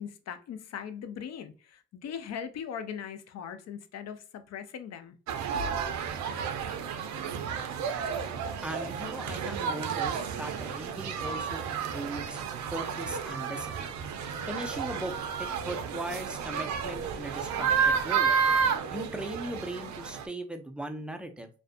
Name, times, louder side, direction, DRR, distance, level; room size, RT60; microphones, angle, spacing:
voice 1, 0.0-5.1 5.5-5.7, left 7 dB, 60° left, 0.5 m, -39 dB
sound 1, 5.3-20.2, right 6 dB, 70° right, 0.5 m, -31 dB
voice 2, 8.6-12.4 12.7-13.9 14.5-18.3 18.9-21.5, right 1 dB, 5° right, 0.4 m, -39 dB
2.5 x 2.2 x 2.4 m
cardioid pair, 90°, 30 cm